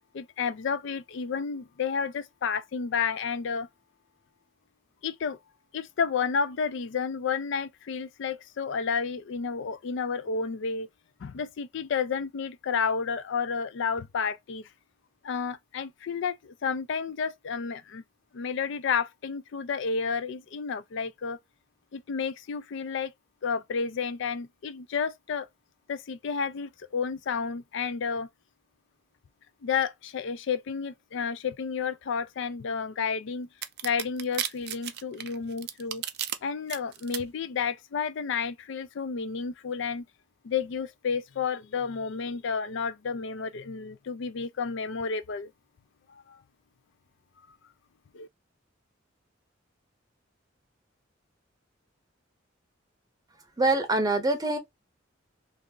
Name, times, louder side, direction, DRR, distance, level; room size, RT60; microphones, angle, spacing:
voice 1, 0.1-3.7 5.0-5.4 5.7-10.9 11.2-14.7 15.2-18.0 18.3-21.4 21.9-23.1 23.4-25.5 25.9-28.3 29.6-33.5 33.8-36.0 36.4-40.1 40.4-45.5 46.1-46.4 48.1-48.3, left 6 dB, 65° left, 0.4 m, -31 dB
sound 1, 33.6-36.4 36.7-37.2, right 11 dB, 60° right, 0.4 m, -33 dB
voice 2, 53.6-54.6, right 2 dB, 20° right, 0.6 m, -24 dB
2.7 x 2.4 x 3.7 m
head